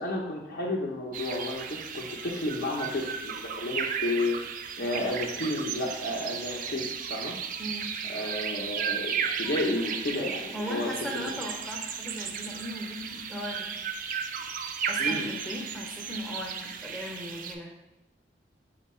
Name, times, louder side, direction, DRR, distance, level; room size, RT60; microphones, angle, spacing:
voice 1, 0.0-4.4 4.8-7.3 8.1-10.9 15.0-15.3, left 1 dB, 60° left, -3 dB, 0.6 m, -32 dB
sound 1, 1.1-17.5, right 7 dB, 50° right, 0.3 m, -35 dB
voice 2, 7.6-7.9 10.5-13.8 14.9-17.7, equal, 5° left, -2 dB, 0.5 m, -37 dB
4.5 x 2.2 x 4.2 m, 0.97 s
head